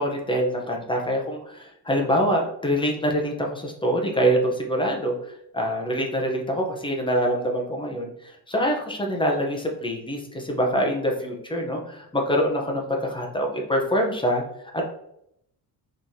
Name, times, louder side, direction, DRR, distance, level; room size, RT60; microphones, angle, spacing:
voice 1, 0.0-14.4 14.7-14.8, equal, 10° left, 0 dB, 0.6 m, -25 dB
3.9 x 3.1 x 2.6 m, 0.76 s
cardioid pair, 135°, 41 cm